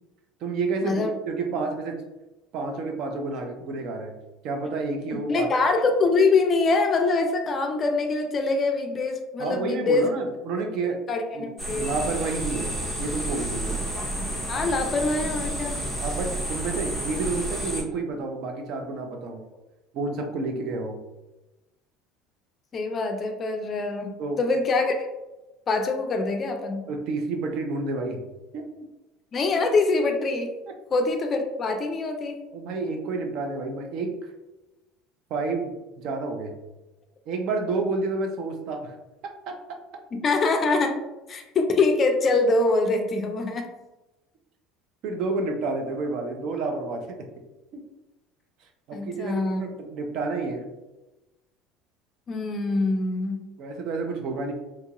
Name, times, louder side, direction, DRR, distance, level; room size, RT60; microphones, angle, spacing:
voice 1, 0.4-2.0 2.5-4.1 4.4-5.5 9.4-11.0 11.3-11.5 11.8-13.9 16.0-19.4 19.9-21.0 24.2-24.4 26.9-28.2 28.5-28.7 32.5-34.1 35.3-36.5 37.3-38.9 39.5-39.6 45.0-47.3 47.7-47.8 48.9-50.7 53.6-54.5, right 3 dB, 55° right, 4 dB, 0.5 m, -30 dB
voice 2, 5.3-10.0 11.1-12.0 14.0-15.8 22.7-24.1 24.4-25.1 25.7-26.8 29.3-30.5 30.9-32.4 40.1-41.0 41.3-43.7 48.9-49.6 52.3-53.4, left 3 dB, 25° left, 4 dB, 0.4 m, -24 dB
sound 1, 11.6-17.8, right 1 dB, 10° right, 0.7 m, -30 dB
2.8 x 2.3 x 2.9 m, 1.0 s
cardioid pair, 155°, 0 cm